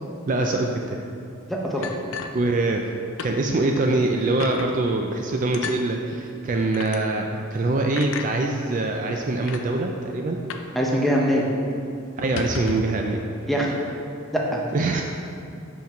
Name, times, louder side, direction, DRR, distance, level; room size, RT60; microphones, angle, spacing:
voice 1, 0.3-1.1 2.3-2.8 3.2-10.4 12.2-13.2 14.7-15.0, right 2 dB, 40° right, 2 dB, 0.3 m, -24 dB
voice 2, 1.5-1.9 10.7-11.5 13.5-13.8 14.3-14.6, equal, ahead, -3 dB, 0.7 m, -23 dB
sound 1, 1.8-2.9 3.2-3.4 3.8-3.9 4.4-4.7 5.5-5.8 6.7-7.0 8.0-8.3 9.1-9.2 9.4-9.6 10.5-10.8 11.0-11.1 11.5-11.6 12.2-13.0, left 5 dB, 65° left, 0.4 m, -33 dB
5.7 x 4.5 x 5.7 m, 2.5 s
head